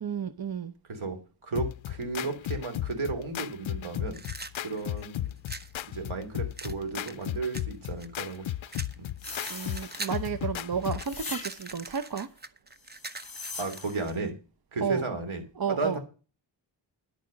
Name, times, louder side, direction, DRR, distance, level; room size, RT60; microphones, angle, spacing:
voice 1, 0.0-0.7 9.5-12.3 14.8-15.0 15.6-16.0, right 7 dB, 50° right, 0.8 m, -32 dB
voice 2, 0.9-4.2 4.6-5.3 5.9-8.5 9.0-9.1 13.6-14.3 14.7-15.4 15.7-16.0, right 3 dB, 75° right, 3.3 m, -34 dB
sound 1, 1.6-11.2, left 13 dB, 70° left, 0.5 m, -35 dB
sound 2, 4.1-5.7 6.6-8.4 8.7-10.3 10.6-14.2, right 3 dB, 20° right, 0.8 m, -42 dB
sound 3, 9.2-10.4 11.0-11.9 12.9-14.1, left 4 dB, 45° left, 3.1 m, -41 dB
11.0 x 8.6 x 5.2 m
wide cardioid pair, 100°, 48 cm